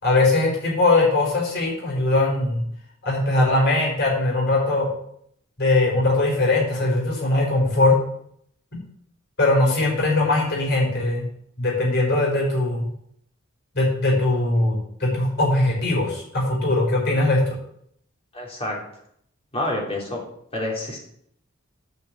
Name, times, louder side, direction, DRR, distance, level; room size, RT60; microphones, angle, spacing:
voice 1, 0.0-2.6 3.0-4.9 5.6-8.0 9.4-11.2 11.6-12.9 13.7-17.5, left 2 dB, 55° left, -2 dB, 4.7 m, -20 dB
voice 2, 18.3-18.8 19.5-20.2 20.5-21.0, left 1 dB, 30° left, -2 dB, 3.3 m, -28 dB
9.2 x 5.8 x 7.5 m, 0.70 s
head